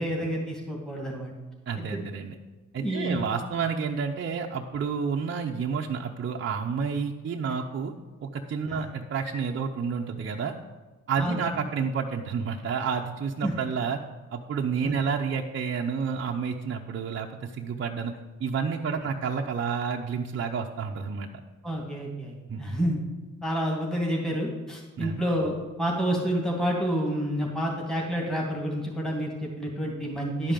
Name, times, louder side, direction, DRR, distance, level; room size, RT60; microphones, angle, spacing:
voice 1, 0.0-1.3 1.9-2.1 2.8-3.3 8.7-8.8 11.2-11.4 13.4-13.5 14.8-14.9 21.6-23.0 23.4-30.5, equal, ahead, -1 dB, 2.2 m, -29 dB
voice 2, 1.7-2.3 2.7-7.9 8.2-10.6 11.1-14.0 14.3-18.1 18.4-21.3 22.5-22.6 25.0-25.2, right 6 dB, 40° right, 0 dB, 0.8 m, -30 dB
10.5 x 5.1 x 7.5 m, 1.2 s
cardioid pair, 90°, 30 cm